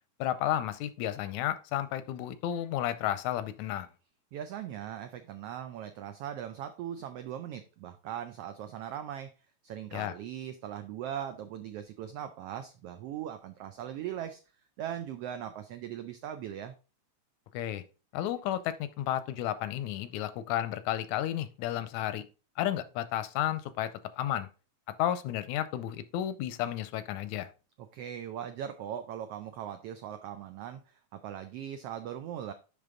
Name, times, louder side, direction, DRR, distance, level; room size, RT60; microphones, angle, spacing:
voice 1, 0.2-3.9 9.9-10.1 17.5-17.8 18.1-22.2 22.6-23.9 24.2-24.5 25.0-27.5, left 12 dB, 85° left, 13 dB, 2.0 m, -32 dB
voice 2, 4.3-9.3 9.6-14.4 14.8-16.7 27.8-32.5, right 10 dB, 85° right, 9 dB, 1.3 m, -39 dB
10.5 x 3.5 x 3.6 m, 0.33 s
omnidirectional pair, 3.3 m